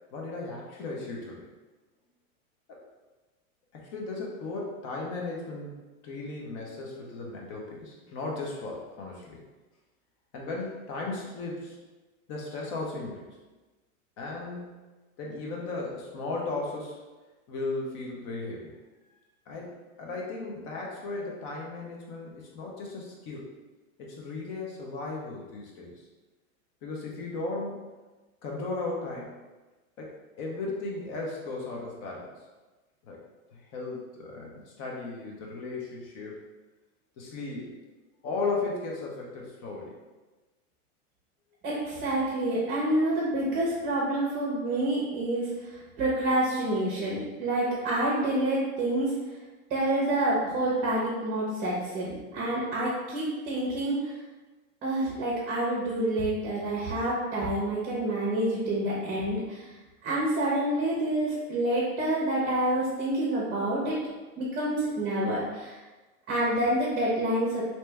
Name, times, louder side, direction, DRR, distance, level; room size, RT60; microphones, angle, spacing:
voice 1, 0.1-1.5 2.7-2.8 3.7-5.8 6.0-9.4 10.3-11.8 12.3-13.3 14.2-14.9 15.2-17.0 17.5-18.7 19.5-23.5 24.0-25.9 26.8-27.8 28.4-29.4 30.0-32.3 33.0-33.2 33.5-36.4 37.2-37.8 38.2-39.9, left 3 dB, 40° left, -2 dB, 0.9 m, -36 dB
voice 2, 41.6-49.1 49.7-54.1 54.8-59.7 60.0-64.0 64.4-65.8 66.3-67.6, right 1 dB, 30° right, -6 dB, 0.8 m, -28 dB
3.3 x 2.9 x 3.3 m, 1.2 s
supercardioid pair, 140°, 43 cm